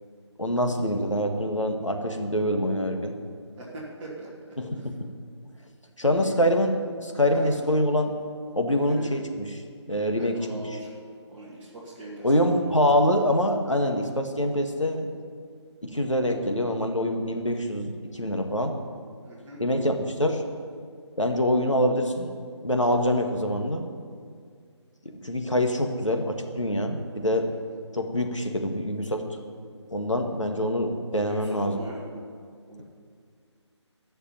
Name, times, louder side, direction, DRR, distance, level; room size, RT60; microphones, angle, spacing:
voice 1, 0.4-3.1 4.6-4.9 6.0-8.1 8.5-9.5 9.9-10.4 12.2-15.1 15.8-18.7 19.6-20.4 21.2-22.3 22.6-23.9 25.2-27.5 27.9-29.4 29.9-31.8, equal, 90° left, 3 dB, 1.9 m, -25 dB
voice 2, 3.5-4.3 4.7-4.9 6.1-6.3 7.3-7.5 8.7-9.1 10.1-10.9 11.2-12.7 19.2-19.6 31.2-32.0 32.7-32.8, right 1 dB, 10° right, -8 dB, 2.5 m, -41 dB
13.5 x 6.7 x 9.2 m, 2.1 s
figure-of-eight pair, 155°, 15 cm